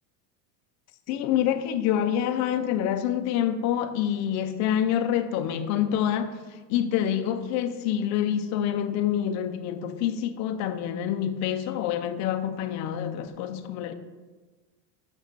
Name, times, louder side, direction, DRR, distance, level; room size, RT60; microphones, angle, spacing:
voice 1, 1.1-13.9, left 10 dB, 35° left, 0.5 m, -27 dB
6.4 x 6.3 x 6.8 m
supercardioid pair, 160°, 48 cm